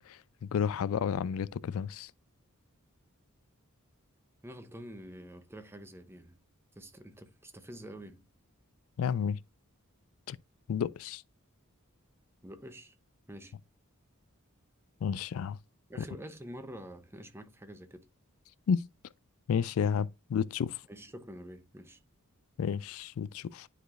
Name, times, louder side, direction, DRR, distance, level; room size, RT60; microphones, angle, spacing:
voice 1, 0.5-2.1 9.0-9.4 10.3-10.4 10.7-11.2 15.0-15.6 18.7-18.9 19.5-20.8 22.6-23.7, left 7 dB, 70° left, 0.3 m, -31 dB
voice 2, 4.4-6.4 6.8-8.2 12.4-12.9 13.3-13.5 15.9-18.0 20.9-22.0, equal, 10° right, 0.7 m, -47 dB
10.0 x 4.8 x 2.4 m
head